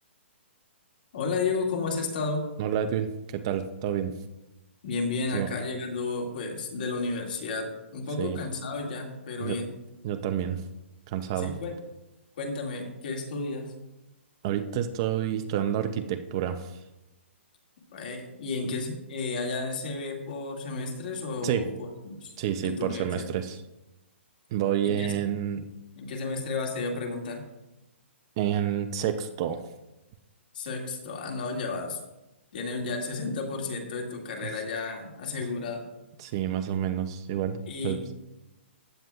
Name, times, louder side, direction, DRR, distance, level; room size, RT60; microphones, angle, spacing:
voice 1, 1.1-2.4 4.8-7.7 7.9-9.7 11.4-11.8 12.4-13.7 17.9-22.3 22.6-23.3 24.8-25.1 26.0-27.4 30.5-32.0 32.5-35.8 37.7-38.0, left 3 dB, 45° left, 1 dB, 2.1 m, -32 dB
voice 2, 2.6-4.1 5.3-5.5 8.2-8.4 9.4-9.6 10.0-10.6 11.1-11.5 14.4-16.8 21.4-21.7 22.4-23.6 24.5-25.7 28.4-29.6 34.4-34.5 36.2-38.0, right 10 dB, 20° right, 7 dB, 0.4 m, -29 dB
15.0 x 9.3 x 2.3 m, 0.97 s
hypercardioid pair, 175°, 7 cm